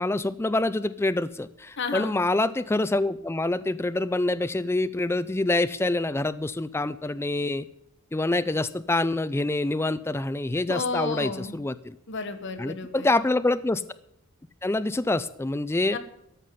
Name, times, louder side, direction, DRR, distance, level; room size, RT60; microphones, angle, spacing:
voice 1, 0.0-7.7 8.1-12.0 12.6-13.8 14.6-16.0, left 2 dB, 10° left, 13 dB, 0.4 m, -26 dB
voice 2, 1.8-2.2 10.7-11.6 12.1-13.1 15.9-16.0, left 4 dB, 55° left, 7 dB, 1.4 m, -32 dB
13.5 x 5.6 x 9.2 m, 0.78 s
head